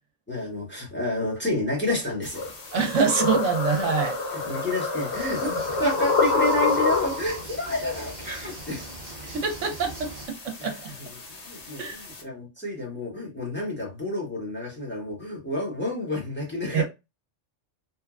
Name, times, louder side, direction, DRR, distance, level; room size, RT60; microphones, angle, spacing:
voice 1, 0.3-2.5 4.3-8.8 10.6-10.7 11.0-16.8, left 1 dB, 10° left, 1.0 m, -30 dB
sound 1, 2.2-12.2, left 3 dB, 40° left, 0.6 m, -44 dB
sound 2, 2.4-7.4, left 3 dB, 65° left, 1.0 m, -26 dB
voice 2, 2.7-4.2 5.5-5.6 9.2-10.8 11.8-12.0 16.7-16.8, right 5 dB, 80° right, 1.0 m, -25 dB
sound 3, 5.1-10.3, right 2 dB, 45° right, 0.7 m, -42 dB
3.0 x 2.2 x 2.4 m
omnidirectional pair, 1.3 m